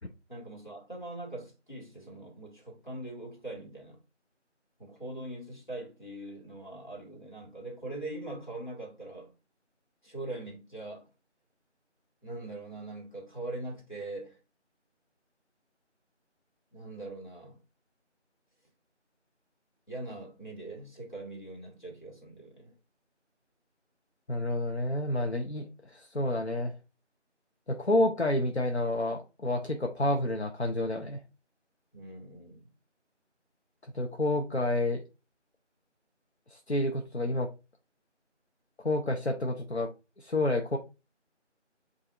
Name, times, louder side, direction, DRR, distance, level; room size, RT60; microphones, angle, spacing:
voice 1, 0.3-4.0 4.8-9.3 10.0-11.1 12.2-14.4 16.7-17.6 19.9-22.7 31.9-32.6, right 2 dB, 40° left, 1.6 m, -42 dB
voice 2, 24.3-26.7 27.7-31.2 33.8-35.0 36.5-37.5 38.8-39.9 40.2-40.8, left 1 dB, 65° left, 0.7 m, -29 dB
7.8 x 2.7 x 2.4 m
figure-of-eight pair, 180°, 36 cm